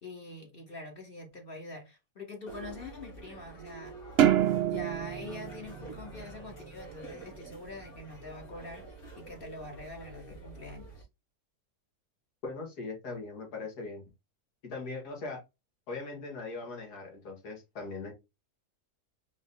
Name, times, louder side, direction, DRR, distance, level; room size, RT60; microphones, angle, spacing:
voice 1, 0.0-4.0 4.7-8.8 9.2-11.1, left 2 dB, 40° left, 1.1 m, -44 dB
sound 1, 2.5-11.0, right 3 dB, 65° left, 2.9 m, -48 dB
sound 2, 4.2-6.7, right 11 dB, 75° right, 0.5 m, -27 dB
voice 2, 12.4-14.0 14.6-15.4 15.9-18.1, left 3 dB, 85° left, 2.0 m, -40 dB
4.7 x 2.6 x 3.6 m
omnidirectional pair, 1.7 m